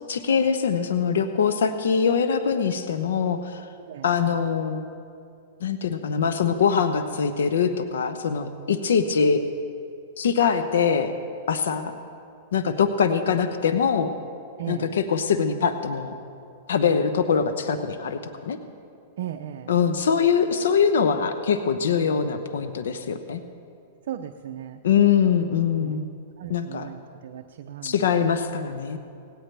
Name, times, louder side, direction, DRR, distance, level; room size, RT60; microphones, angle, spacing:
voice 1, 0.1-3.6 4.0-4.8 5.6-9.4 10.2-11.1 11.5-11.9 12.5-14.1 14.7-16.1 16.7-18.6 19.7-23.4 24.8-26.1 26.5-26.9 27.8-29.0, left 6 dB, 85° left, 9 dB, 0.9 m, -23 dB
voice 2, 3.8-4.1 14.6-15.0 19.2-19.8 24.1-24.8 25.8-26.0 26.4-28.3, right 10 dB, 65° right, 5 dB, 0.6 m, -37 dB
17.5 x 17.5 x 3.4 m, 2.5 s
hypercardioid pair, 140°, 0 cm